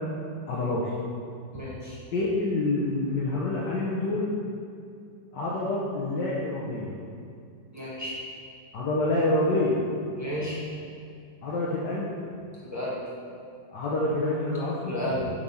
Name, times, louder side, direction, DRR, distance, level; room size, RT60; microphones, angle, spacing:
voice 1, 0.5-0.9 2.1-4.3 5.3-7.0 8.7-9.8 11.4-12.1 13.7-15.0, left 2 dB, 65° left, -6 dB, 1.5 m, -27 dB
voice 2, 1.5-2.0 7.7-8.2 10.2-10.6 12.6-13.0 14.8-15.3, left 1 dB, 10° right, -8 dB, 1.3 m, -32 dB
7.3 x 4.7 x 5.4 m, 2.4 s
omnidirectional pair, 2.1 m